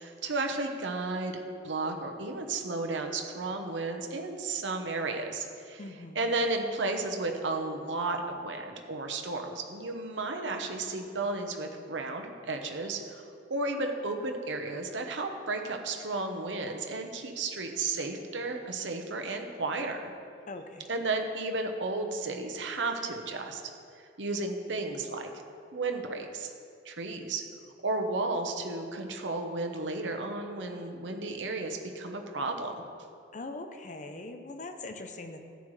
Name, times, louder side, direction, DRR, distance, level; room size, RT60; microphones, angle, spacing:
voice 1, 0.0-5.8 6.1-20.1 20.9-23.6 24.2-25.3 25.7-26.5 26.8-27.4 27.8-32.8, right 3 dB, 70° right, 4 dB, 1.0 m, -33 dB
voice 2, 5.8-6.3 20.5-21.0 33.3-35.4, left 2 dB, 40° left, 6 dB, 0.6 m, -42 dB
13.5 x 9.3 x 3.2 m, 2.4 s
head